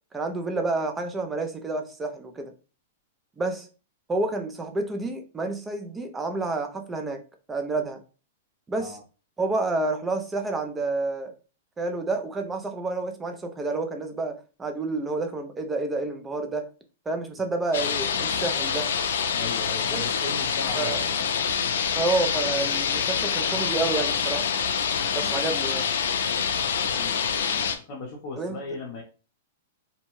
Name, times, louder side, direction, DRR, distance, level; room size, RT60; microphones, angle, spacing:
voice 1, 0.1-2.5 3.4-3.7 4.1-7.2 7.5-8.0 8.7-9.0 9.4-11.3 11.8-16.7 17.1-18.9 19.9-20.1 20.8-21.0 21.9-24.5 25.1-25.9 28.4-28.6, right 3 dB, 10° right, 0.3 m, -29 dB
sound 1, 17.7-27.8, left 7 dB, 80° left, 0.4 m, -26 dB
voice 2, 19.3-21.2 25.1-25.4 26.7-29.0, left 3 dB, 40° left, 0.6 m, -38 dB
2.7 x 2.1 x 2.9 m
supercardioid pair, 160°, 0 cm